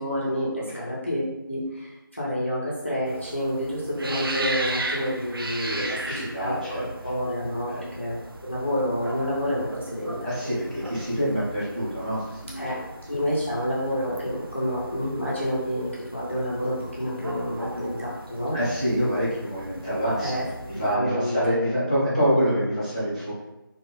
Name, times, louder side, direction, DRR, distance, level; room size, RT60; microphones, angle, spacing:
voice 1, 0.0-10.2 10.4-10.6 12.6-12.8 13.1-18.6 20.2-20.4 20.9-21.7, equal, 30° left, -7 dB, 0.5 m, -29 dB
sound 1, 3.0-20.9, right 2 dB, 75° right, 0.4 m, -37 dB
voice 2, 5.6-6.8 7.7-7.9 10.2-12.7 18.5-20.3 20.7-23.3, equal, 20° right, -12 dB, 0.7 m, -26 dB
2.6 x 2.3 x 3.1 m, 0.98 s
figure-of-eight pair, 175°, 12 cm